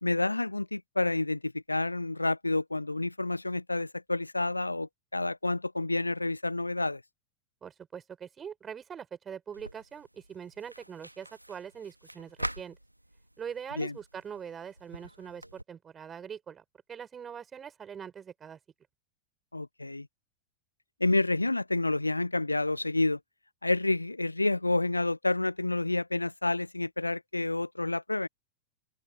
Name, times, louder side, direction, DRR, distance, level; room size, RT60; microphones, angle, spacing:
voice 1, 0.0-7.0 13.8-13.9 19.5-20.1 21.0-23.2 23.6-28.3, left 2 dB, 85° left, 0.4 m, -29 dB
voice 2, 7.6-12.8 13.4-18.6, right 7 dB, 20° right, 4.8 m, -43 dB
sound 1, 9.5-15.6, right 1 dB, 85° right, 1.3 m, -44 dB
open air
figure-of-eight pair, 90°, 0 cm